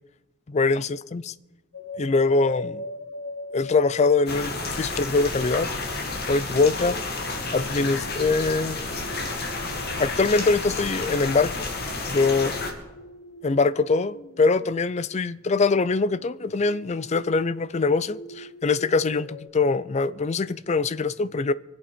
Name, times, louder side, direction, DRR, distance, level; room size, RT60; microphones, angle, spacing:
voice 1, 0.5-1.3 2.0-2.8 3.5-5.7 6.3-7.0 7.5-8.8 10.0-11.5 12.1-12.5 13.4-21.5, left 3 dB, 30° left, 0.4 m, -23 dB
sound 1, 1.7-5.9 7.3-14.7 16.1-19.5, left 2 dB, 70° left, 0.9 m, -43 dB
sound 2, 4.3-12.7, left 3 dB, 50° left, 2.1 m, -31 dB
24.5 x 8.5 x 5.1 m
head